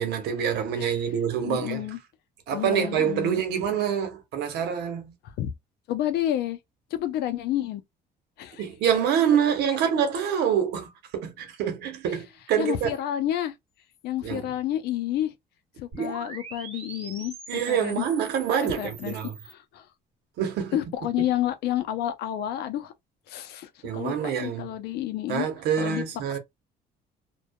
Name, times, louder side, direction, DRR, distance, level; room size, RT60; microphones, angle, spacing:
voice 1, 0.0-1.9 2.5-5.1 8.6-12.9 14.2-14.5 16.0-16.1 17.5-19.3 20.4-20.8 23.8-24.7 25.3-26.4, right 8 dB, 75° right, 0.9 m, -26 dB
voice 2, 1.4-2.0 2.5-3.4 5.4-5.5 5.9-6.6 6.9-7.8 8.4-8.6 12.6-13.5 14.0-15.3 15.8-18.1 18.6-19.1 19.4-19.8 20.7-22.9 23.3-25.5 25.8-26.0 26.3-26.4, left 12 dB, 75° left, 0.5 m, -30 dB
sound 1, 15.9-19.5, right 4 dB, 35° right, 1.0 m, -42 dB
2.7 x 2.2 x 2.2 m
cardioid pair, 110°, 17 cm